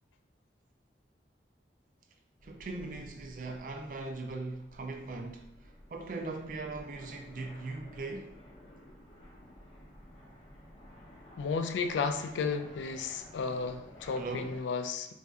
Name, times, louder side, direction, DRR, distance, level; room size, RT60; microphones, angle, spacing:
sound 1, 2.4-14.6, equal, 30° left, 0.6 m, -53 dB
voice 1, 2.4-5.4 5.9-8.3 14.2-14.5, right 3 dB, 45° right, 0.4 m, -39 dB
voice 2, 11.4-15.1, left 5 dB, 90° left, 0.3 m, -33 dB
4.1 x 2.5 x 2.3 m
head